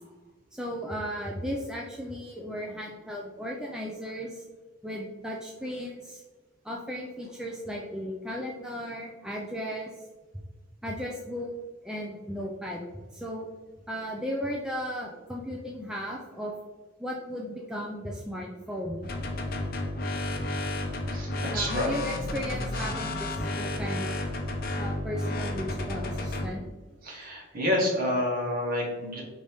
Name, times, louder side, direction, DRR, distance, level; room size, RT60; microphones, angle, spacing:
voice 1, 0.5-4.4 4.8-6.2 6.6-9.9 10.8-11.5 11.8-12.8 13.1-13.5 13.9-16.5 17.0-19.1 21.5-24.2 24.8-26.6, equal, 5° right, -2 dB, 0.3 m, -35 dB
sound 1, 19.0-26.5, left 1 dB, 50° left, 0.6 m, -32 dB
voice 2, 21.1-21.9 22.7-22.9 27.0-29.2, left 1 dB, 45° right, -2 dB, 1.2 m, -29 dB
5.0 x 2.7 x 3.3 m, 1.3 s
head